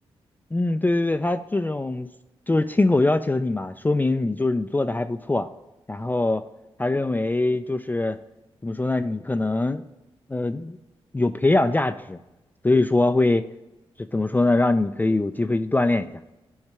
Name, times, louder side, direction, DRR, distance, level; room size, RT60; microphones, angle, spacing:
voice 1, 0.5-2.1 2.5-5.5 5.9-6.4 6.8-8.2 8.6-9.8 10.3-10.8 11.1-12.2 12.6-13.4 14.1-16.1, left 2 dB, 15° left, 9 dB, 0.4 m, -22 dB
8.9 x 3.2 x 4.7 m, 0.99 s
supercardioid pair, 45°, 11 cm